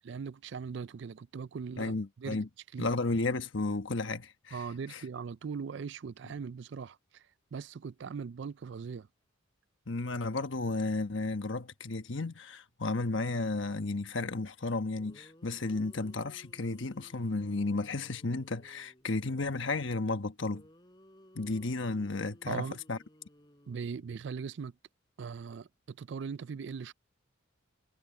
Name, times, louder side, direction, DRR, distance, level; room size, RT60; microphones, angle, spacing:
voice 1, 0.1-2.4 2.7-2.9 4.5-7.2 7.5-9.1 22.5-22.8 23.7-24.7 25.2-26.9, right 5 dB, 55° right, 0.4 m, -40 dB
voice 2, 1.8-2.5 2.8-4.6 4.9-5.0 9.9-20.6 21.3-23.0, left 3 dB, 65° left, 1.2 m, -33 dB
sound 1, 15.0-19.1 20.4-24.4, equal, 20° left, 6.3 m, -59 dB
head